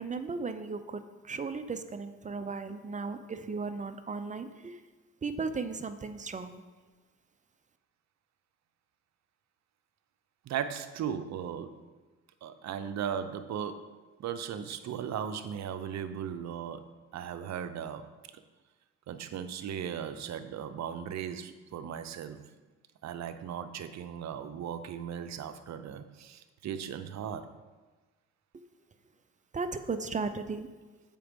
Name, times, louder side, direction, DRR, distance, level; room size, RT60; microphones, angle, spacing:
voice 1, 0.0-4.8 5.2-6.6 29.5-30.7, right 4 dB, 25° right, 10 dB, 0.5 m, -36 dB
voice 2, 10.5-11.8 12.4-18.1 19.1-22.4 23.0-27.5, right 8 dB, 65° right, 11 dB, 0.6 m, -37 dB
7.4 x 5.2 x 5.1 m, 1.3 s
cardioid pair, 90°, 30 cm